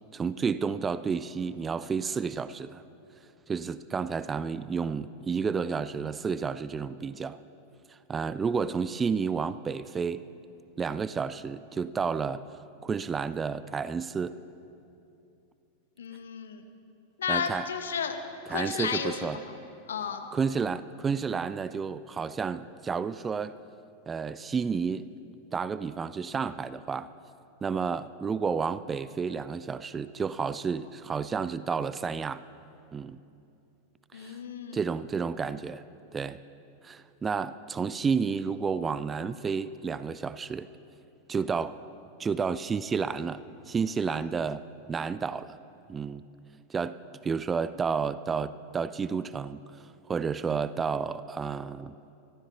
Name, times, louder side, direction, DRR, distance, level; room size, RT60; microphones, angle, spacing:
voice 1, 0.1-2.8 3.5-7.4 8.1-10.3 10.8-12.5 12.8-14.3 17.3-17.7 18.5-19.4 20.3-23.6 24.1-25.1 25.5-27.1 27.6-32.4 32.9-33.2 34.1-34.4 34.7-35.8 36.1-36.4 36.8-40.7 41.3-41.8 42.2-45.6 45.9-46.2 46.7-52.0, right 5 dB, 20° right, 16 dB, 0.3 m, -31 dB
voice 2, 16.0-16.6 17.2-18.2 18.5-19.3 19.9-20.3 34.1-34.8, left 7 dB, 65° left, 7 dB, 1.1 m, -32 dB
24.0 x 15.0 x 3.1 m, 2.7 s
figure-of-eight pair, 90°, 0 cm